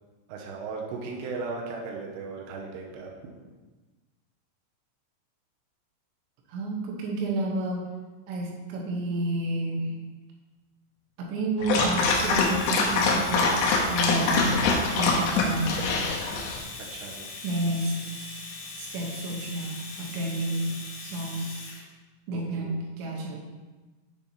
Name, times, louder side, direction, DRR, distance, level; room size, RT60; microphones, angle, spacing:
voice 1, 0.3-3.5 16.9-17.3 22.3-22.8, right 4 dB, 90° right, -1 dB, 2.5 m, -37 dB
voice 2, 6.5-7.9 8.3-9.9 11.2-13.6 13.9-14.5 14.9-16.2 17.4-17.9 18.8-20.7 21.0-21.6 22.3-23.4, right 2 dB, 70° right, -1 dB, 3.1 m, -30 dB
Dog, 11.6-16.6, left 3 dB, 90° left, 3.7 m, -24 dB
Domestic sounds home sounds, 12.0-21.8, left 3 dB, 70° left, 3.0 m, -41 dB
8.5 x 6.9 x 2.8 m, 1.2 s
omnidirectional pair, 5.9 m